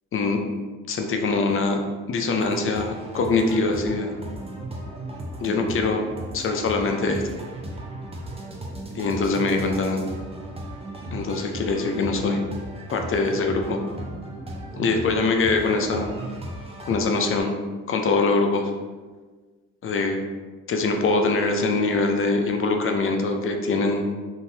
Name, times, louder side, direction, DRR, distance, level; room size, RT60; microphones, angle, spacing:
voice 1, 0.9-1.8 2.1-4.1 5.4-6.0 6.3-7.2 8.9-10.0 11.1-12.4 12.9-13.8 14.7-16.1 16.8-17.5 17.9-18.7 19.8-20.2 20.7-24.1, left 3 dB, 45° left, 4 dB, 0.5 m, -23 dB
sound 1, 2.4-17.4, right 1 dB, 20° right, 0.7 m, -36 dB
3.7 x 2.6 x 2.7 m, 1.4 s
cardioid pair, 90°, 30 cm